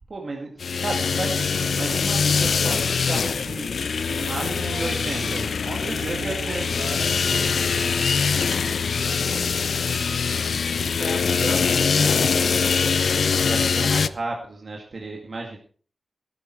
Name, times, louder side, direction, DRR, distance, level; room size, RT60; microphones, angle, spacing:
voice 1, 0.1-6.8 10.8-15.6, right 3 dB, 50° right, 0 dB, 2.0 m, -34 dB
sound 1, 0.6-14.1, left 5 dB, 75° left, 0.5 m, -23 dB
voice 2, 4.4-10.6, right 3 dB, 70° right, 4 dB, 2.8 m, -38 dB
17.0 x 10.5 x 4.5 m, 0.43 s
wide cardioid pair, 150°, 0 cm